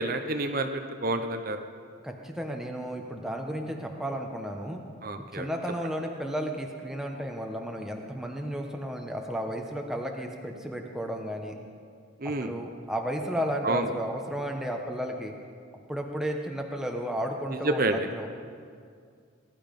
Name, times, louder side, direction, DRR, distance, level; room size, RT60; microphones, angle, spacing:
voice 1, 0.0-1.6 5.0-5.5 12.2-12.5 13.6-13.9 17.6-18.1, right 2 dB, 45° right, 6 dB, 0.7 m, -28 dB
voice 2, 2.0-4.8 5.3-11.5 12.2-15.3 15.9-18.3, equal, ahead, 1 dB, 1.1 m, -33 dB
20.5 x 11.5 x 5.3 m, 2.2 s
head